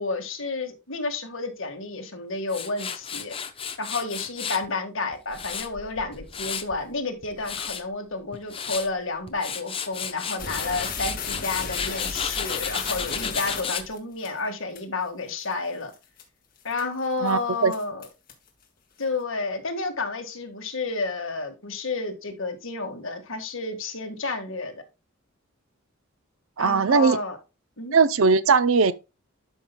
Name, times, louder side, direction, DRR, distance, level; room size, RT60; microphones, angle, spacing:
voice 1, 0.0-3.4 3.8-15.9 16.6-18.1 19.0-24.7 26.6-27.4 27.8-28.0, left 3 dB, 65° left, 1.8 m, -31 dB
Tools, 2.5-4.7 5.1-6.8 7.2-7.8 8.3-8.9 9.3-13.9, left 7 dB, 25° left, 0.7 m, -33 dB
sound 1, 10.4-14.3 14.8-14.9 15.4-15.5 15.9-16.2 16.7-17.0 17.3-17.4 17.7-18.5, left 5 dB, 40° left, 1.8 m, -34 dB
voice 2, 17.2-17.7 26.6-27.2 27.9-28.9, right 5 dB, 75° right, 0.6 m, -19 dB
12.5 x 5.6 x 2.2 m
head